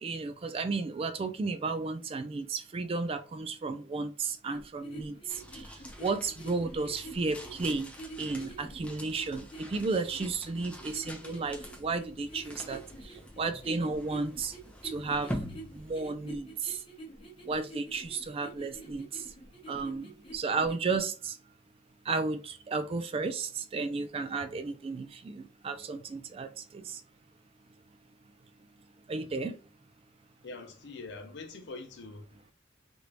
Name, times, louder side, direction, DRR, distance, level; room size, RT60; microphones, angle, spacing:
voice 1, 0.0-7.9 8.2-14.5 14.8-15.3 15.7-16.8 17.5-19.2 19.7-21.4 22.1-27.0 29.1-29.6, right 4 dB, 30° right, 0.3 m, -33 dB
sound 1, 4.5-21.0, right 2 dB, 30° left, 1.0 m, -47 dB
sound 2, 5.3-16.6, equal, 5° left, 0.6 m, -45 dB
voice 2, 30.4-32.4, left 3 dB, 65° left, 0.6 m, -44 dB
3.2 x 2.6 x 2.9 m
head